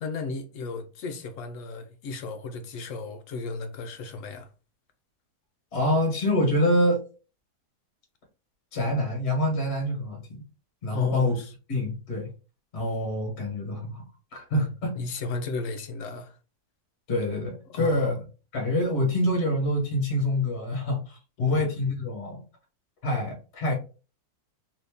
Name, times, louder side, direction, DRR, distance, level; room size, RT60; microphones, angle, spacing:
voice 1, 0.0-4.5 10.9-11.5 14.5-14.7 14.9-16.4 17.7-18.2 21.5-21.6, left 3 dB, 65° left, 0.8 m, -34 dB
voice 2, 5.7-7.0 8.7-10.4 10.8-11.4 11.7-12.3 12.7-14.0 14.3-14.9 17.1-18.1 18.5-22.4 23.0-23.7, left 1 dB, 45° left, 1.4 m, -26 dB
3.1 x 2.7 x 3.5 m
omnidirectional pair, 1.7 m